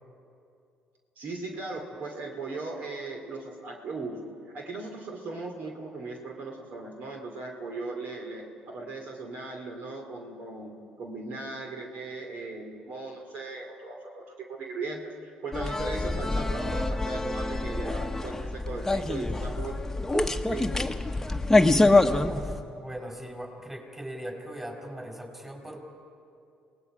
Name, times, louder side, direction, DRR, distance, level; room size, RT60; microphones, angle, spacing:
voice 1, 1.2-4.2 4.5-10.7 11.0-19.8 20.1-20.9, right 3 dB, 65° right, 1 dB, 2.6 m, -38 dB
sound 1, 15.5-22.6, left 2 dB, 10° left, 1.1 m, -25 dB
voice 2, 22.3-25.8, right 1 dB, 15° right, 1 dB, 5.2 m, -40 dB
27.5 x 19.0 x 4.9 m, 2.5 s
supercardioid pair, 65°, 3 cm